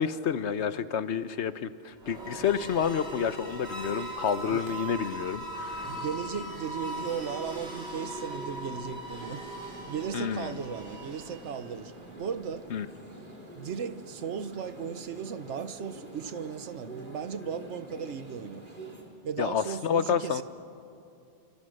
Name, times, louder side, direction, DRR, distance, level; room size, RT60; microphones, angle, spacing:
voice 1, 0.0-6.0 10.1-10.5 12.7-12.9 19.4-20.4, left 7 dB, 80° left, 1.1 m, -29 dB
sound 1, 1.9-11.9, right 1 dB, 65° right, 4.2 m, -40 dB
sound 2, 2.1-4.9 5.7-19.0, right 1 dB, 45° right, 3.8 m, -47 dB
voice 2, 5.8-9.5 9.8-11.9 12.2-12.7 13.5-18.7 19.2-20.4, right 7 dB, 85° right, 1.2 m, -36 dB
28.5 x 26.5 x 6.5 m
omnidirectional pair, 1.2 m